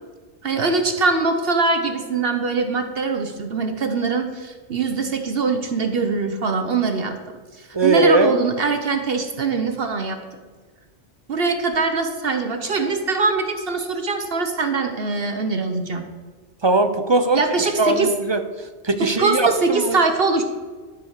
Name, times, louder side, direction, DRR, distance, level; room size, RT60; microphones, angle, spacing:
voice 1, 0.4-7.2 7.6-10.2 11.3-16.1 17.3-18.1 19.2-20.4, right 4 dB, 55° right, 6 dB, 1.0 m, -22 dB
voice 2, 7.7-8.3 16.6-17.4 17.8-18.4 18.8-20.0, right 3 dB, 35° right, 8 dB, 0.4 m, -19 dB
12.5 x 4.7 x 6.4 m, 1.4 s
omnidirectional pair, 1.2 m